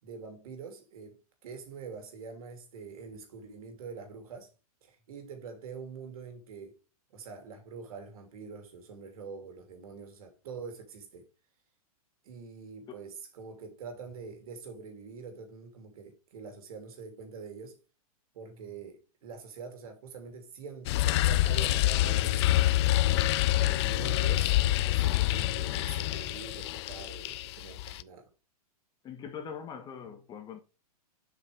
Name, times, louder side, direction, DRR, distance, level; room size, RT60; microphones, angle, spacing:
voice 1, 0.0-4.5 4.8-6.8 7.1-11.3 12.2-17.8 18.3-23.0 23.8-28.3, right 5 dB, 70° right, 3.0 m, -45 dB
sound 1, 20.9-28.0, left 15 dB, 45° left, 0.5 m, -26 dB
voice 2, 29.0-30.6, left 7 dB, 20° left, 1.2 m, -42 dB
7.4 x 6.0 x 3.4 m
hypercardioid pair, 140°, 19 cm